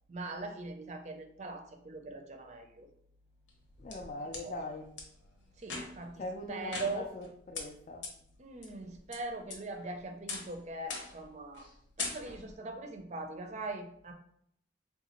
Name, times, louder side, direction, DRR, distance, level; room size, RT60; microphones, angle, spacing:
voice 1, 0.1-2.9 4.4-4.6 5.6-7.1 8.4-11.7 12.0-14.1, right 2 dB, 40° right, 5 dB, 0.4 m, -41 dB
sound 1, 3.5-4.4 5.0-5.1 5.6-6.1 6.7-7.3 7.5-7.6 8.0-8.1 8.6-9.2 9.5-9.9 10.3-10.5 10.9-11.2 11.5-11.7 12.0-12.5, left 4 dB, 85° left, 0.8 m, -40 dB
voice 2, 3.8-4.9 6.2-8.1, left 2 dB, 40° left, 1 dB, 0.3 m, -41 dB
3.8 x 2.3 x 2.9 m, 0.71 s
head